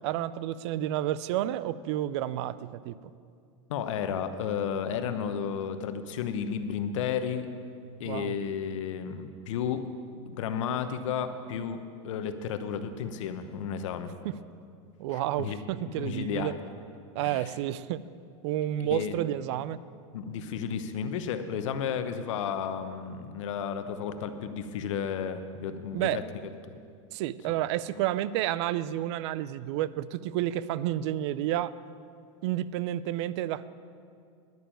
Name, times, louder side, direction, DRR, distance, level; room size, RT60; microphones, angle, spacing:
voice 1, 0.0-3.0 8.0-8.4 14.2-14.3 15.0-16.5 17.1-18.0 18.4-19.8 25.9-26.2 27.1-31.7 32.4-33.7, right 13 dB, 60° right, 17 dB, 0.4 m, -30 dB
voice 2, 3.7-7.5 8.0-9.9 10.3-14.1 15.1-15.6 16.0-16.6 17.2-17.5 18.9-19.2 20.1-26.2, left 7 dB, 75° left, 9 dB, 0.9 m, -33 dB
10.5 x 6.7 x 9.0 m, 2.3 s
supercardioid pair, 125°, 16 cm